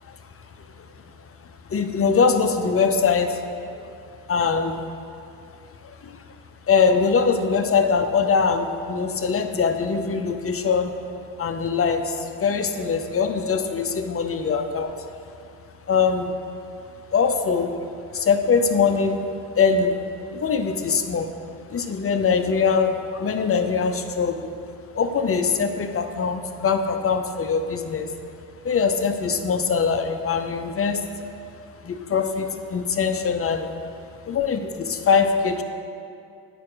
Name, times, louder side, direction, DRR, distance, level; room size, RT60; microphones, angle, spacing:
voice 1, 1.7-3.4 3.7-3.9 4.3-4.8 5.8-6.2 6.7-10.9 11.4-14.9 15.9-16.4 17.1-17.7 18.1-19.2 19.6-20.0 20.3-21.3 21.7-24.5 24.9-28.1 28.6-31.0 31.8-33.7 34.2-35.6, left 5 dB, 30° left, 7 dB, 0.7 m, -22 dB
10.0 x 4.3 x 4.8 m, 2.5 s
hypercardioid pair, 60°, 45 cm